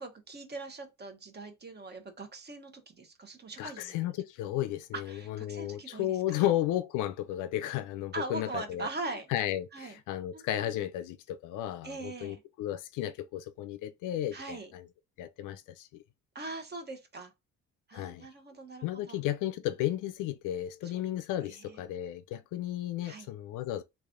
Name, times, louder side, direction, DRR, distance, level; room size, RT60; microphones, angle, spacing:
voice 1, 0.0-4.0 4.9-6.4 8.1-9.3 9.7-10.0 10.3-10.8 11.8-12.4 14.3-14.7 16.3-17.3 17.9-19.2 20.8-21.0 21.4-21.8 23.0-23.3, right 3 dB, 35° right, 1.0 m, -42 dB
voice 2, 3.6-8.9 9.3-14.8 15.2-16.0 17.9-18.3 18.8-23.8, left 13 dB, 85° left, 0.5 m, -34 dB
3.2 x 2.5 x 3.6 m
cardioid pair, 90°, 30 cm